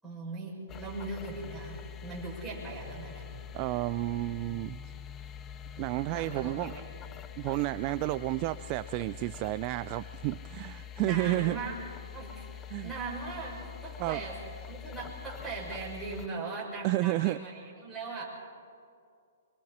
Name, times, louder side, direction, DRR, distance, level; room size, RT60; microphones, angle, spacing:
voice 1, 0.0-3.3 5.8-6.8 10.7-11.8 12.1-14.4 14.6-18.2, right 3 dB, 5° right, -7 dB, 6.7 m, -39 dB
sound 1, 0.7-16.3, left 9 dB, 20° left, 0.6 m, -45 dB
voice 2, 3.5-4.8 5.8-6.7 7.4-11.6 12.7-12.9 14.0-14.2 16.8-17.4, right 18 dB, 35° right, 13 dB, 0.4 m, -31 dB
25.0 x 25.0 x 4.3 m, 2.3 s
hypercardioid pair, 150°, 0 cm